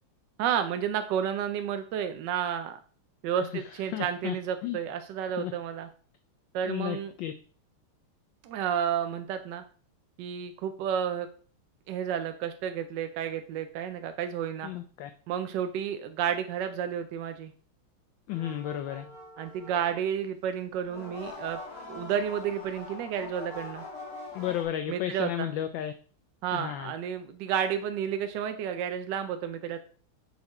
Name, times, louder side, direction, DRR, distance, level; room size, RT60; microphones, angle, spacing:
voice 1, 0.4-2.8 3.2-5.9 6.5-7.1 8.4-9.6 10.2-11.3 11.9-14.7 15.3-17.5 19.4-21.6 21.9-23.8 24.9-25.5 26.4-29.8, right 8 dB, 75° right, 8 dB, 1.0 m, -31 dB
voice 2, 3.9-4.4 4.6-4.8 5.4-5.5 6.6-7.3 14.6-15.1 18.3-19.1 24.3-25.9 26.5-26.9, left 12 dB, 75° left, 9 dB, 1.1 m, -33 dB
sound 1, 18.3-20.1 20.8-24.6, left 2 dB, 30° left, 1.9 m, -43 dB
7.7 x 4.4 x 4.2 m, 0.43 s
omnidirectional pair, 2.4 m